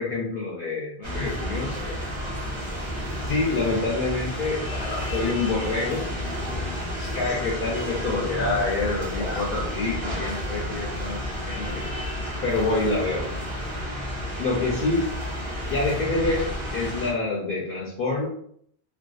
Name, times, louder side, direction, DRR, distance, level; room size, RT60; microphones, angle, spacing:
voice 1, 0.0-2.0 3.2-4.6 5.0-6.0 7.1-11.8 12.4-13.2 14.4-15.1 15.7-18.3, left 3 dB, 60° left, -3 dB, 0.7 m, -27 dB
sound 1, 1.0-17.1, equal, 30° right, 0.8 m, -31 dB
Zipper (clothing), 2.7-3.1 4.7-5.1 5.6-5.8 6.1-6.2 6.4-6.5 6.8-7.4 7.8-7.9 8.1-8.6 8.9-9.4 9.8-9.9 11.2-11.6, left 2 dB, 85° left, 1.1 m, -39 dB
2.5 x 2.2 x 2.3 m, 0.65 s
omnidirectional pair, 1.2 m